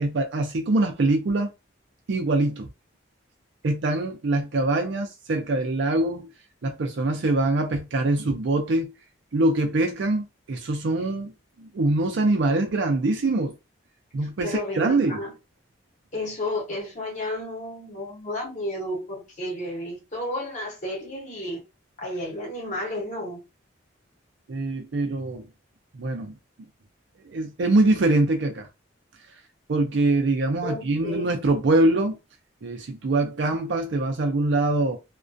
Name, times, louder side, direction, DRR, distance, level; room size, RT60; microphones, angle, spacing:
voice 1, 0.0-1.5 2.1-2.7 3.6-6.3 6.6-8.9 9.3-11.3 11.6-13.6 14.1-15.2 24.5-25.5 25.9-26.3 27.3-28.7 29.7-32.2 32.6-35.0, right 2 dB, 65° right, 0.4 m, -23 dB
voice 2, 14.2-15.3 16.1-21.6 22.0-23.4 30.6-31.3, left 1 dB, 35° left, 0.9 m, -32 dB
2.3 x 2.1 x 2.5 m
head